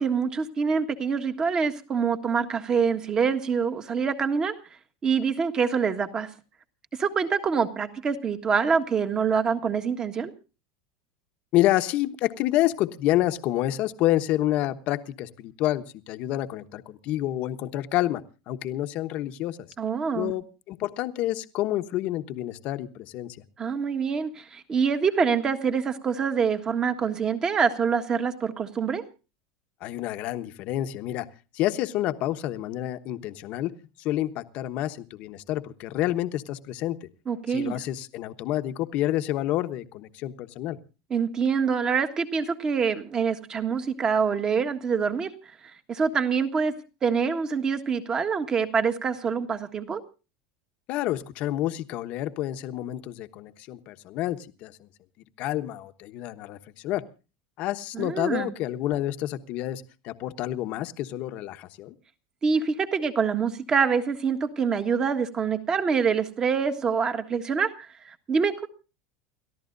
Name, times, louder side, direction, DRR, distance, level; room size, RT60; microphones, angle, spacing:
voice 1, 0.0-4.5 5.0-6.3 7.0-10.3 19.8-20.3 23.6-29.0 37.3-37.8 41.1-45.3 45.9-46.7 47.0-50.0 57.9-58.5 62.4-68.7, right 6 dB, 25° right, 7 dB, 1.5 m, -25 dB
voice 2, 11.5-19.6 20.1-23.4 29.8-31.3 31.5-37.0 37.5-40.8 50.9-54.9 55.4-56.6 56.8-57.0 57.6-61.9, left 14 dB, 50° left, 9 dB, 1.1 m, -28 dB
29.5 x 13.5 x 2.6 m, 0.33 s
supercardioid pair, 145°, 3 cm